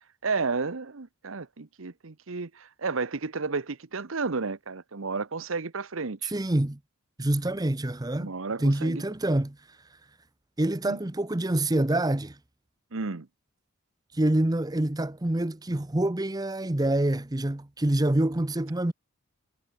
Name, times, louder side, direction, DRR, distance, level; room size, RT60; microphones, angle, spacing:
voice 1, 0.2-6.3 8.2-9.0 10.8-11.0 12.9-13.3, right 4 dB, 65° right, 1.0 m, -32 dB
voice 2, 6.2-6.8 7.2-8.3 8.6-9.6 10.6-12.4 14.1-18.9, right 1 dB, 20° right, 0.8 m, -26 dB
head